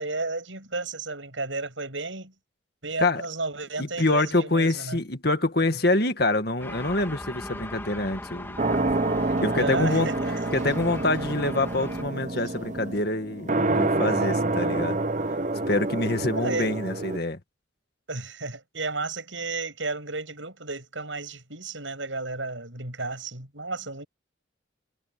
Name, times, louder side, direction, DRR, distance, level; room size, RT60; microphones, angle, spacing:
voice 1, 0.0-2.3 2.8-5.0 9.6-10.3 16.3-16.7 18.1-24.1, right 3 dB, 75° right, 7.7 m, -33 dB
voice 2, 3.8-8.6 9.4-10.1 10.5-15.0 15.7-17.4, left 2 dB, 50° left, 2.0 m, -26 dB
sound 1, 6.6-12.0, left 1 dB, 10° left, 3.0 m, -39 dB
sound 2, 8.6-17.2, right 2 dB, 40° right, 0.9 m, -27 dB
head